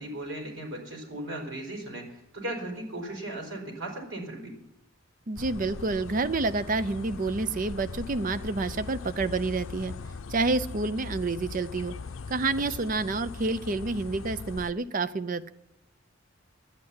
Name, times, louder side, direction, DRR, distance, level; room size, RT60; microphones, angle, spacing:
voice 1, 0.0-4.5, right 1 dB, 65° right, 0 dB, 4.7 m, -37 dB
voice 2, 5.3-9.9 10.3-11.9 12.3-15.5, right 3 dB, 40° right, 12 dB, 0.6 m, -28 dB
sound 1, 5.4-14.7, left 4 dB, 80° left, 0.6 m, -40 dB
11.0 x 8.6 x 9.6 m, 0.87 s
head